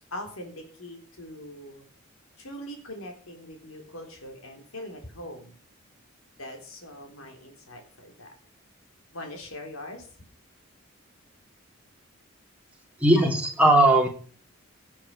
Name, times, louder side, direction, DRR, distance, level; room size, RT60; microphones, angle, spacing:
voice 1, 0.1-1.9 2.4-5.5 6.4-8.3 9.1-10.1, left 1 dB, 85° left, 4 dB, 3.9 m, -41 dB
voice 2, 13.0-14.1, right 1 dB, 5° right, 0 dB, 3.0 m, -18 dB
16.5 x 8.6 x 5.6 m, 0.42 s
head